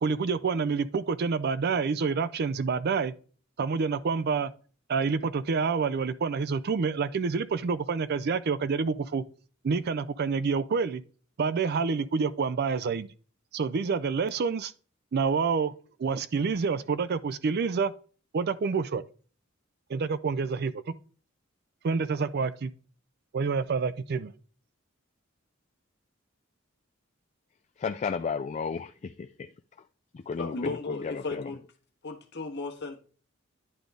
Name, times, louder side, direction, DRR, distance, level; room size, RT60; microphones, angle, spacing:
voice 1, 0.0-3.1 3.6-4.5 4.9-9.2 9.6-11.0 11.4-13.1 13.5-14.7 15.1-15.7 16.0-17.9 18.3-19.0 19.9-20.9 21.8-22.7 23.3-24.3, right 5 dB, 50° right, 0.4 m, -28 dB
voice 2, 27.8-29.9 30.3-31.5, left 5 dB, 35° left, 0.3 m, -34 dB
voice 3, 30.4-31.6 32.0-33.0, left 3 dB, 55° left, 1.2 m, -35 dB
10.0 x 3.8 x 3.4 m
head